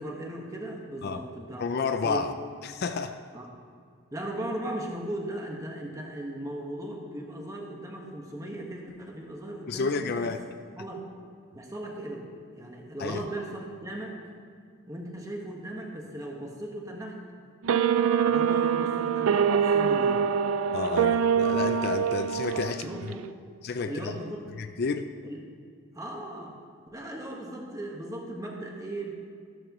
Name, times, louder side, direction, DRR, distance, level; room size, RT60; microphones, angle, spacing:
voice 1, 0.0-1.6 2.0-2.2 3.3-3.5 4.1-10.3 10.7-11.1 11.5-14.2 14.9-17.2 18.2-20.2 22.7-23.3 23.8-24.5 25.2-25.4 25.9-26.6 26.9-29.1, right 1 dB, 15° right, 0 dB, 1.4 m, -37 dB
voice 2, 1.6-2.3 2.6-3.2 9.7-10.4 13.0-13.2 20.7-22.9 23.6-24.2 24.6-25.1, left 4 dB, 45° left, 8 dB, 0.4 m, -30 dB
sound 1, 17.6-23.2, right 7 dB, 70° right, 0.4 m, -24 dB
13.5 x 12.5 x 3.1 m, 2.1 s
head